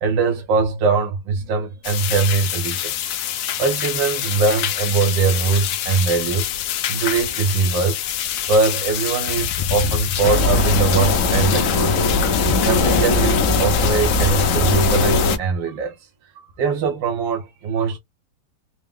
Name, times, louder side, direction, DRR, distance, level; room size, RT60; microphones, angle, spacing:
voice 1, 0.0-2.9 3.6-6.5 6.9-8.0 8.5-12.1 12.6-15.9 16.3-18.0, right 4 dB, 80° right, 1.6 m, -21 dB
sound 1, 1.8-15.4, left 11 dB, 75° left, 0.7 m, -26 dB
sound 2, 10.2-15.4, left 3 dB, 50° left, 1.1 m, -19 dB
4.7 x 2.2 x 3.5 m
omnidirectional pair, 2.0 m